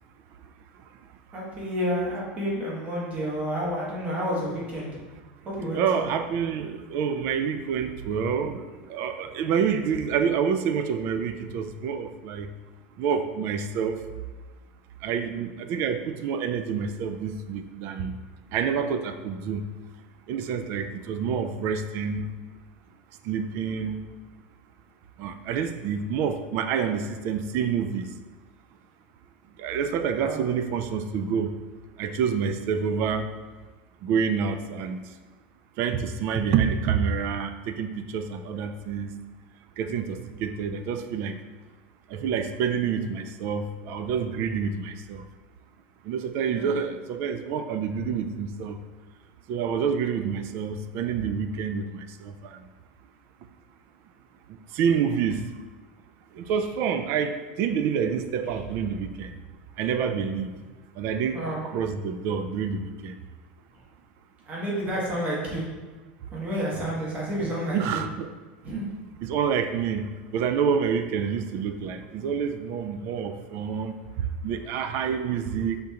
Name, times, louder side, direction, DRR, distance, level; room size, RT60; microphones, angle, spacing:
voice 1, 1.3-4.9 5.4-6.1 30.2-30.4 46.5-46.7 61.3-61.6 64.5-65.6 66.3-68.0 68.6-68.9 72.2-72.3, equal, 25° right, -4 dB, 1.2 m, -30 dB
voice 2, 5.7-12.5 13.0-14.0 15.0-18.2 18.5-19.7 20.3-22.3 23.2-24.0 25.2-28.1 29.6-31.6 32.0-33.3 34.0-35.1 35.8-39.2 39.8-41.4 42.1-45.2 46.0-48.8 49.5-52.7 54.5-55.5 56.3-59.4 59.8-60.5 61.0-63.2 67.7-68.3 69.2-75.8, right 7 dB, 50° right, 8 dB, 0.3 m, -28 dB
5.1 x 3.6 x 2.8 m, 1.3 s
supercardioid pair, 145°, 5 cm